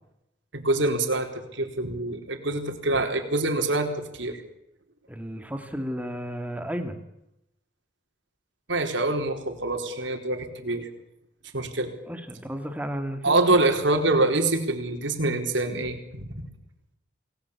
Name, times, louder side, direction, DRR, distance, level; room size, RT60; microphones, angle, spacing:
voice 1, 0.5-4.4 8.7-10.9 11.5-11.9 13.2-16.5, right 2 dB, 80° right, 5 dB, 4.3 m, -25 dB
voice 2, 5.1-7.0 12.1-13.5, equal, 10° right, 7 dB, 2.3 m, -33 dB
28.5 x 19.0 x 8.5 m, 0.84 s
head